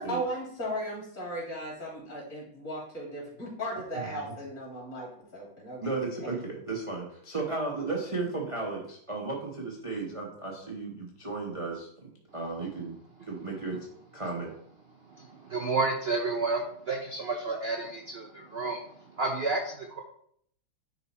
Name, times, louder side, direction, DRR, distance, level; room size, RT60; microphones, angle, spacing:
voice 1, 0.0-5.8, equal, 35° left, -5 dB, 3.5 m, -36 dB
voice 2, 5.8-13.0 13.2-13.9 14.1-14.5, right 3 dB, 25° right, -2 dB, 0.7 m, -34 dB
voice 3, 15.0-20.0, right 3 dB, 80° right, 0 dB, 0.5 m, -31 dB
10.5 x 4.1 x 4.2 m, 0.67 s
omnidirectional pair, 2.4 m